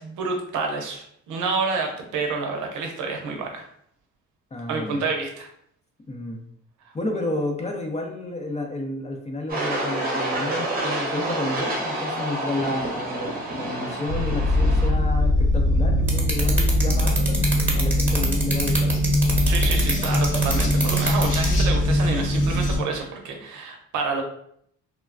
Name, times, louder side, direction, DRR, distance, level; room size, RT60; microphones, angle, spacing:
voice 1, 0.0-3.6 4.7-5.5 19.5-24.2, right 4 dB, 80° right, 2 dB, 0.7 m, -28 dB
voice 2, 4.5-5.0 6.1-6.5 6.9-19.0, left 2 dB, 20° left, 2 dB, 0.6 m, -31 dB
sound 1, 9.5-14.9, right 1 dB, 30° right, 0.8 m, -28 dB
sound 2, 14.1-22.8, left 1 dB, 90° left, 0.9 m, -21 dB
sound 3, 16.1-21.5, right 2 dB, 5° right, 1.0 m, -25 dB
3.3 x 2.2 x 2.4 m, 0.68 s
cardioid pair, 90°, 30 cm